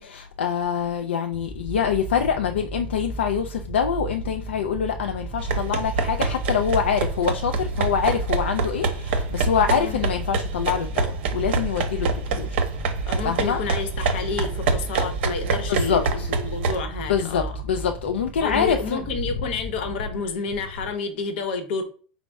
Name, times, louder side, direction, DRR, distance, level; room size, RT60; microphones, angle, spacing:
voice 1, 0.0-12.6 13.2-13.6 15.7-16.3 17.1-19.1, left 7 dB, 85° left, 0.3 m, -25 dB
sound 1, 1.3-19.9, right 3 dB, 5° right, 0.5 m, -35 dB
sound 2, 5.4-16.8, right 4 dB, 70° right, 0.6 m, -26 dB
voice 2, 9.7-10.0 13.1-16.0 16.3-17.5 18.4-21.8, left 4 dB, 70° left, 0.8 m, -30 dB
4.1 x 2.0 x 3.4 m
hypercardioid pair, 110°, 6 cm